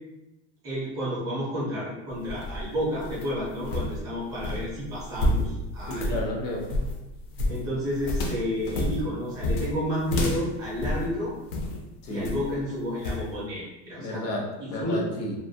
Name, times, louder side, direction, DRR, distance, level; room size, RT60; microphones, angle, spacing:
voice 1, 0.6-6.1 7.5-11.3 12.1-14.2 14.6-15.0, equal, 10° right, -8 dB, 0.4 m, -31 dB
sound 1, 2.1-11.8 12.2-12.6 13.0-13.3, left 1 dB, 55° left, 0.5 m, -30 dB
voice 2, 5.9-6.7 12.0-12.3 14.0-15.3, left 1 dB, 80° left, -2 dB, 0.9 m, -31 dB
2.4 x 2.1 x 2.6 m, 0.96 s
supercardioid pair, 175°, 35 cm